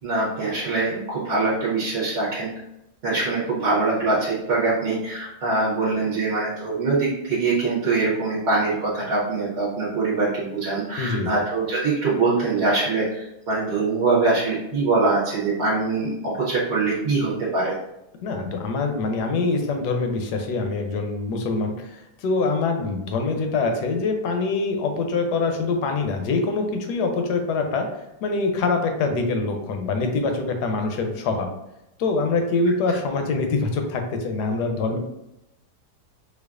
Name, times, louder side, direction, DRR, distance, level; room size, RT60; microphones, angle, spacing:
voice 1, 0.0-2.5 3.0-17.7, right 3 dB, 50° right, -7 dB, 0.8 m, -23 dB
voice 2, 11.0-11.3 18.2-27.9 28.2-31.5 32.0-35.0, left 3 dB, 75° left, 4 dB, 1.2 m, -24 dB
4.5 x 2.3 x 2.3 m, 0.87 s
omnidirectional pair, 1.8 m